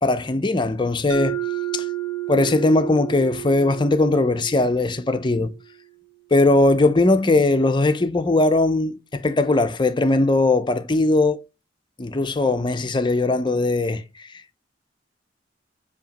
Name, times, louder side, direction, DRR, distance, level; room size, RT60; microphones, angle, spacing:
voice 1, 0.0-1.4 1.7-1.8 2.3-5.5 6.3-11.4 12.0-14.0 14.3-14.6, left 2 dB, 25° left, 0.6 m, -19 dB
Mallet percussion, 1.1-5.7, right 12 dB, 50° right, 1.5 m, -31 dB
7.4 x 2.9 x 5.2 m
head